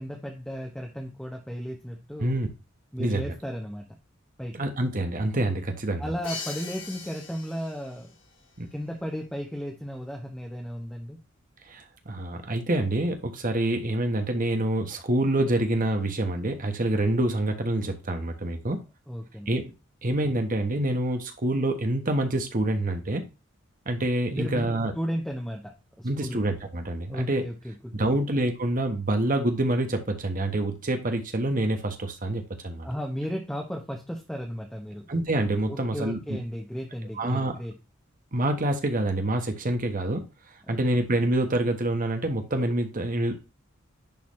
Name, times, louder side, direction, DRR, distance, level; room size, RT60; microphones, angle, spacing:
voice 1, 0.0-2.4 2.9-3.8 4.4-4.6 6.0-8.1 8.7-11.2 19.1-19.5 24.3-24.7 24.9-26.4 27.1-28.2 32.8-35.0 35.7-37.7, equal, 5° left, 1 dB, 0.9 m, -35 dB
voice 2, 3.0-3.3 4.5-6.1 8.6-8.7 11.7-18.8 19.5-19.7 20.0-23.2 23.8-24.9 26.0-27.4 27.9-32.9 35.1-36.4 37.2-37.5 38.3-40.2 40.7-43.4, right 1 dB, 40° right, 6 dB, 1.3 m, -26 dB
Crash cymbal, 6.2-8.1, left 4 dB, 65° left, 2.3 m, -39 dB
10.5 x 4.0 x 3.2 m, 0.27 s
head